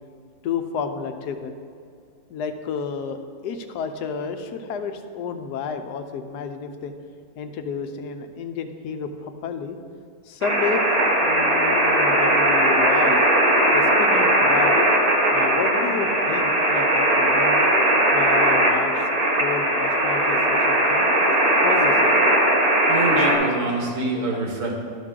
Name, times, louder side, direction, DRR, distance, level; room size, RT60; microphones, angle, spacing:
voice 1, 0.4-1.5 2.3-3.2 3.4-6.9 7.4-9.8 10.3-10.8 11.2-13.2 13.7-14.9 15.3-17.7 18.1-19.0 19.4-21.1 21.6-22.1 24.3-24.5, left 6 dB, 85° left, 7 dB, 1.2 m, -31 dB
sound 1, 10.4-23.3, right 1 dB, 25° right, 1.2 m, -19 dB
voice 2, 22.9-24.7, right 2 dB, 80° right, 0 dB, 1.7 m, -25 dB
11.5 x 5.8 x 3.7 m, 2.3 s
omnidirectional pair, 1.7 m